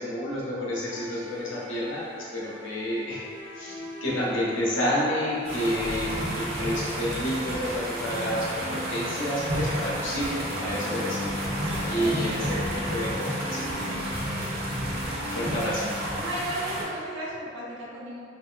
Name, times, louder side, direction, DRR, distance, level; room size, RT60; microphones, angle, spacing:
voice 1, 0.0-3.3 3.5-11.4 11.9-13.8 14.0-14.2 15.2-15.9, equal, 75° left, -6 dB, 0.8 m, -30 dB
sound 1, 0.9-16.2, left 1 dB, 10° left, 0.4 m, -38 dB
sound 2, 5.4-16.8, right 1 dB, 55° right, 0.6 m, -31 dB
voice 2, 11.7-12.2 16.1-18.2, right 1 dB, 85° right, -6 dB, 0.8 m, -35 dB
2.9 x 2.6 x 2.4 m, 2.2 s
head